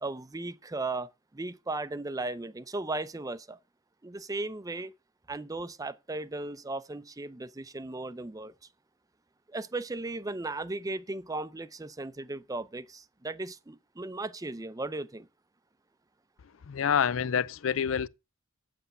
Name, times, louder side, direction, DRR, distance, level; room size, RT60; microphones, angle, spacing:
voice 1, 0.0-3.6 4.0-4.9 5.3-8.5 9.5-15.3, right 2 dB, 20° right, 0.5 m, -36 dB
voice 2, 16.7-18.1, left 7 dB, 85° left, 0.5 m, -27 dB
8.2 x 7.9 x 5.5 m
head